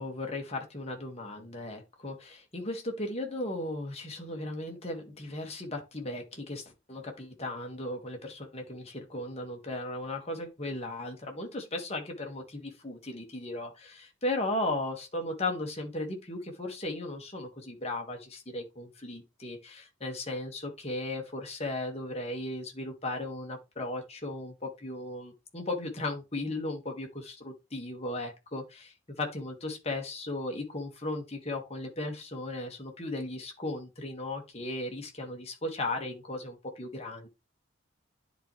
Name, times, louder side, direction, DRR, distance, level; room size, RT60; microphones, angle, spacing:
voice 1, 0.0-37.3, left 2 dB, 30° left, 1.6 m, -36 dB
10.0 x 4.3 x 3.1 m
head